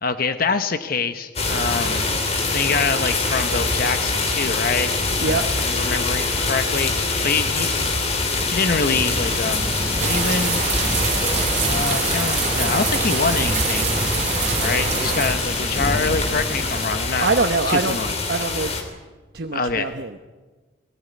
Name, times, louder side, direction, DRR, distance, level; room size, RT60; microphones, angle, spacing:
voice 1, 0.0-2.1 2.5-7.9 8.5-9.6 10.0-10.6 11.6-13.9 14.6-17.3 17.7-18.1 19.5-19.9, left 4 dB, 50° left, 8 dB, 1.1 m, -25 dB
sound 1, 1.4-18.8, left 3 dB, 35° left, 3.2 m, -24 dB
sound 2, 8.9-16.9, right 1 dB, 5° right, 1.2 m, -30 dB
sound 3, 10.0-15.3, right 5 dB, 40° right, 3.8 m, -25 dB
voice 2, 17.2-18.7 19.3-20.3, right 3 dB, 60° right, 7 dB, 1.0 m, -24 dB
21.5 x 16.0 x 9.5 m, 1.3 s
head